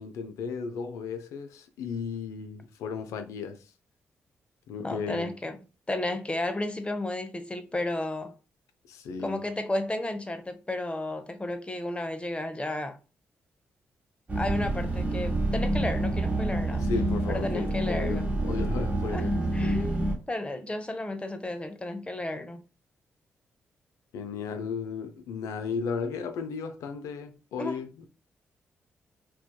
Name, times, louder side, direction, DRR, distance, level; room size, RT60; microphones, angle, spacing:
voice 1, 0.0-3.6 4.7-5.3 8.9-9.4 16.8-19.3 24.1-28.1, left 5 dB, 80° left, 0.3 m, -35 dB
voice 2, 4.8-5.6 5.9-8.3 9.2-13.0 14.4-16.9 17.3-18.3 19.1-19.3 19.5-22.6 27.6-27.9, left 1 dB, 20° left, 0.6 m, -33 dB
sound 1, 14.3-20.2, right 1 dB, 30° right, 1.0 m, -28 dB
2.6 x 2.2 x 2.2 m
hypercardioid pair, 45°, 5 cm